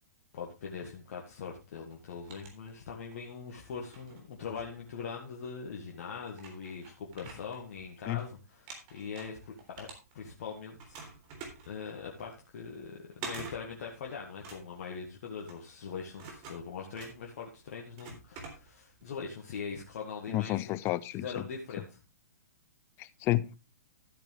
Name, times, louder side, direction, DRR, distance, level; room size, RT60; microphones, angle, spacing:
voice 1, 0.3-9.9 10.1-11.0 11.7-20.8 21.1-22.0, left 5 dB, 50° left, 1.9 m, -42 dB
sound 1, 1.9-3.2 3.7-5.4 6.0-6.1 6.3-8.2 8.5-10.4 10.8-19.0, right 4 dB, 35° right, 3.6 m, -48 dB
voice 2, 20.3-21.2 23.0-23.5, left 16 dB, 25° left, 0.6 m, -30 dB
13.0 x 8.8 x 3.4 m
figure-of-eight pair, 115°, 9 cm